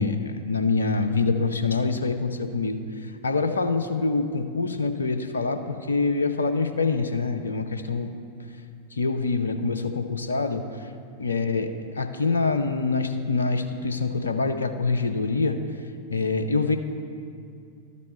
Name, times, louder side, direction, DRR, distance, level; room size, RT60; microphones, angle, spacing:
voice 1, 0.0-2.8 3.2-8.1 9.0-10.6 11.2-11.7 12.0-15.6 16.1-16.8, left 4 dB, 75° left, 8 dB, 0.5 m, -25 dB
12.5 x 4.2 x 4.4 m, 2.4 s
figure-of-eight pair, 90°, 0 cm